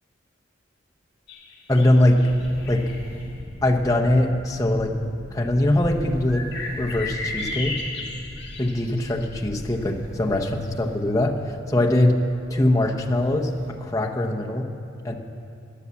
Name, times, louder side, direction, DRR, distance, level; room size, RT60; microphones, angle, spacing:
sound 1, 1.3-3.2 6.3-9.2, left 2 dB, 60° left, 1.8 m, -34 dB
voice 1, 1.7-2.2 2.7-2.8 3.6-6.5 6.8-7.8 8.6-11.3 11.7-12.2 12.5-14.7 15.0-15.1, left 1 dB, 15° left, 1 dB, 0.9 m, -22 dB
sound 2, 1.8-3.4 5.5-7.1 7.5-7.7 9.4-11.1 11.3-11.4 12.8-13.7, equal, 80° right, 3.5 m, -44 dB
sound 3, 2.3-13.4, equal, 35° right, 1.6 m, -42 dB
14.0 x 9.8 x 7.2 m, 2.6 s
head